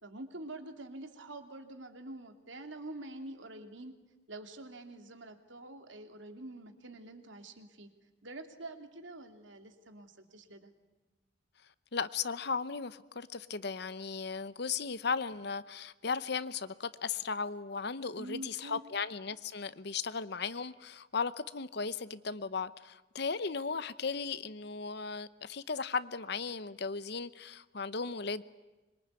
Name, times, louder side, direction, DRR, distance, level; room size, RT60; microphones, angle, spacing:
voice 1, 0.0-3.9 4.3-7.9 8.2-10.7 18.2-18.8, right 2 dB, 75° right, 2.9 m, -46 dB
voice 2, 11.9-28.4, left 5 dB, 55° left, 0.8 m, -36 dB
26.0 x 23.0 x 9.6 m
head